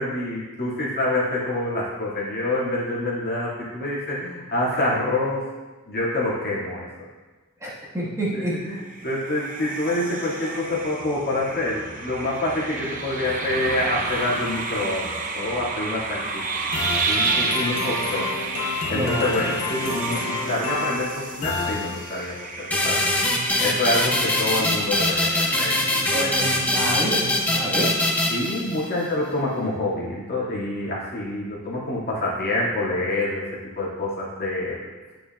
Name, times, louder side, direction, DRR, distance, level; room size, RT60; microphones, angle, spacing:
voice 1, 0.0-5.5 5.9-6.9 8.3-16.4 17.1-18.3 18.9-23.0 23.6-26.3 28.3-33.4 33.8-34.8, left 2 dB, 45° left, -6 dB, 2.2 m, -27 dB
voice 2, 7.6-8.5 18.9-19.4 26.1-27.9, right 1 dB, 15° right, -7 dB, 1.6 m, -28 dB
sound 1, 8.8-25.1, right 4 dB, 40° right, 0.8 m, -31 dB
sound 2, 16.7-22.4, left 4 dB, 65° left, 0.7 m, -29 dB
sound 3, 22.7-29.1, left 1 dB, 5° left, 0.9 m, -23 dB
9.3 x 9.1 x 2.4 m, 1.2 s
head